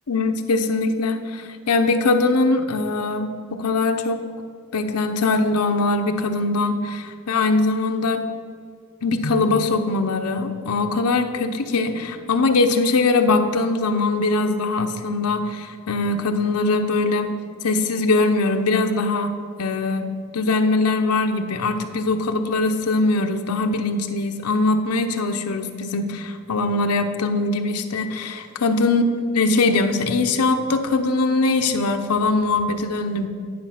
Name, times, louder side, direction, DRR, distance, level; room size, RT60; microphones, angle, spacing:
voice 1, 0.1-4.2 4.7-8.2 9.0-17.4 17.6-29.0 29.3-33.3, left 3 dB, 85° left, 6 dB, 0.7 m, -21 dB
10.5 x 5.2 x 5.7 m, 2.2 s
head